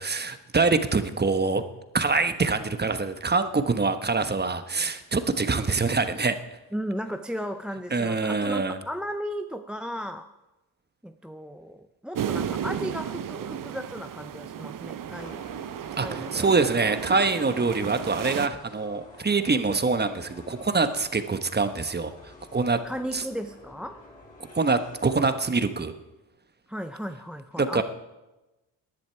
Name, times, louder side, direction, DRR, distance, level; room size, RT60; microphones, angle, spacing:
voice 1, 0.0-1.6 1.9-6.3 7.9-8.8 16.0-22.1 22.5-22.8 23.1-23.2 24.5-25.9 27.6-27.8, right 4 dB, 20° right, 9 dB, 1.2 m, -25 dB
voice 2, 6.7-10.3 11.0-15.4 16.0-16.5 22.8-24.0 26.7-27.8, equal, ahead, 9 dB, 0.6 m, -35 dB
sound 1, 12.1-18.5, right 9 dB, 40° right, 0.8 m, -34 dB
sound 2, 15.2-25.3, left 2 dB, 15° left, 5.4 m, -50 dB
19.0 x 10.5 x 4.7 m, 1.1 s
supercardioid pair, 65°, 49 cm